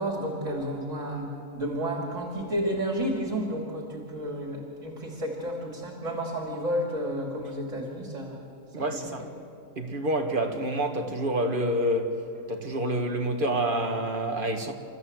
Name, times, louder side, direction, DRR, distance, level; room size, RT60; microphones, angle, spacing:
voice 1, 0.0-8.5 8.9-9.3, equal, 60° right, 2.8 m, -31 dB
voice 2, 8.7-9.3 9.8-12.2 12.5-14.7, right 1 dB, 35° right, 1.8 m, -28 dB
29.0 x 14.0 x 7.8 m
omnidirectional pair, 1.5 m